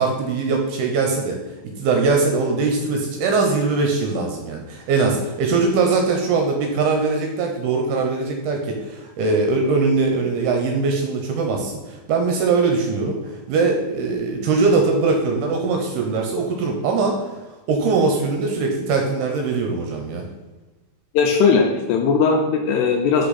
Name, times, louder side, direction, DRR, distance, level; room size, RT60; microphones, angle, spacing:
voice 1, 0.0-1.4 1.8-17.3 17.7-20.2, right 4 dB, 80° right, 2 dB, 2.5 m, -21 dB
voice 2, 21.1-23.3, left 5 dB, 80° left, 2 dB, 2.5 m, -18 dB
5.8 x 5.8 x 4.1 m, 1.1 s
omnidirectional pair, 5.0 m